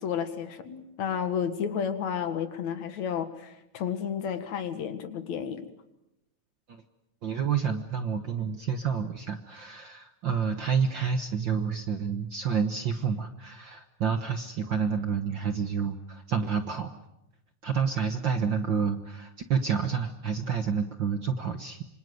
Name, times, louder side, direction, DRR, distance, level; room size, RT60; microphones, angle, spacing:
voice 1, 0.0-5.7, left 7 dB, 70° left, 10 dB, 3.0 m, -32 dB
voice 2, 7.2-16.9 17.6-21.8, right 6 dB, 55° right, 8 dB, 1.4 m, -29 dB
26.5 x 26.0 x 7.9 m, 0.87 s
omnidirectional pair, 3.4 m